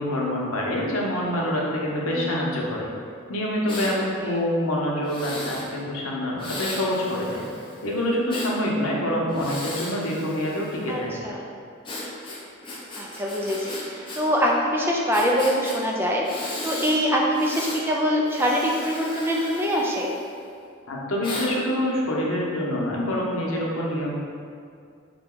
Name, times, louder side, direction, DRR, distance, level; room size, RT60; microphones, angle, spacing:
voice 1, 0.0-2.9 3.3-7.4 7.8-11.2 20.9-24.1, left 1 dB, 85° left, -3 dB, 0.8 m, -26 dB
voice 2, 2.0-2.4 4.2-4.4 10.9-11.4 13.0-20.1, equal, 10° right, -2 dB, 0.3 m, -24 dB
Breathing, 3.7-4.0 5.0-5.7 6.4-8.5 9.3-10.9 11.8-14.2 14.5-14.6 15.1-15.8 16.2-17.0 17.3-17.8 18.3-20.4 21.2-21.5, left 1 dB, 25° left, 0.6 m, -36 dB
5.1 x 2.2 x 3.7 m, 2.3 s
head